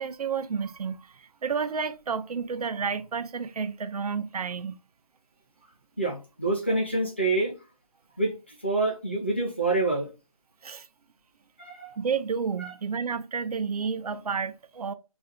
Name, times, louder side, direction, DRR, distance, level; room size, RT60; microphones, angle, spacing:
voice 1, 0.0-4.8 10.6-10.9 12.0-14.9, right 6 dB, 80° right, 0.4 m, -31 dB
voice 2, 6.0-7.5 8.2-10.1 11.6-11.9 12.6-12.7, right 2 dB, 20° left, 0.4 m, -27 dB
2.5 x 2.1 x 3.7 m
figure-of-eight pair, 175°, 19 cm